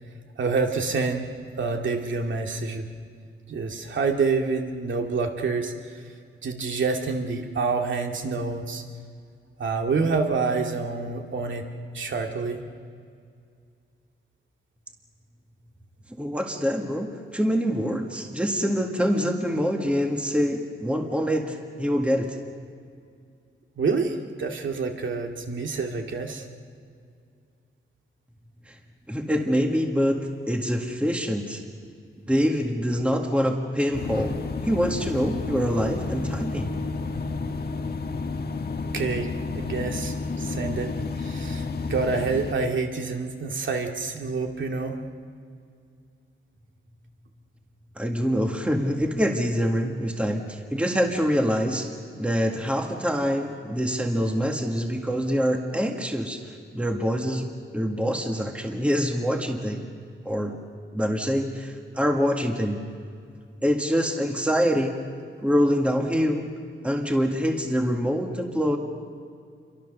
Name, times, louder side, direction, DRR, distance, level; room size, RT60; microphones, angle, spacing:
voice 1, 0.4-1.3 1.6-2.9 3.5-6.0 6.4-8.8 9.6-11.7 11.9-12.6 23.8-26.5 38.9-39.3 39.5-40.9 41.2-41.6 41.9-45.0, right 4 dB, 65° right, 3 dB, 2.4 m, -27 dB
voice 2, 16.1-22.4 28.7-28.8 29.1-31.6 32.3-36.7 48.0-59.9 60.2-60.6 60.9-62.8 63.6-65.0 65.4-66.5 66.8-68.8, equal, 5° right, 2 dB, 1.8 m, -25 dB
sound 1, 33.9-42.5, left 3 dB, 50° left, 1.4 m, -31 dB
29.0 x 24.0 x 6.8 m, 2.3 s
wide cardioid pair, 160°, 21 cm